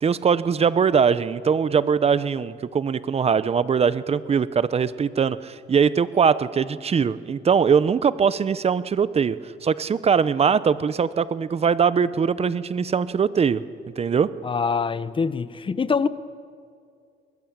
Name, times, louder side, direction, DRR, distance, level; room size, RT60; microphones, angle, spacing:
voice 1, 0.0-9.4 9.6-13.6 14.0-14.3, right 6 dB, 30° right, 0.8 m, -21 dB
voice 2, 14.4-16.1, left 5 dB, 25° left, 0.8 m, -24 dB
23.0 x 20.0 x 8.9 m
cardioid pair, 125°, 20 cm